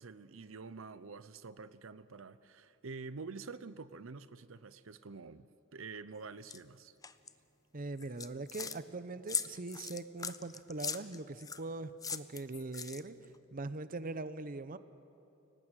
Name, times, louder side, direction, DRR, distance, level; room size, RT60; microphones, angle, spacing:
voice 1, 0.0-7.0, right 4 dB, 75° right, 14 dB, 0.7 m, -47 dB
sound 1, 6.5-6.6 7.0-7.3 8.0-8.8 9.3-11.6 12.0-13.3, left 6 dB, 20° left, 0.7 m, -39 dB
voice 2, 7.7-14.8, right 2 dB, 45° right, 13 dB, 0.8 m, -42 dB
29.5 x 18.5 x 9.1 m, 2.8 s
head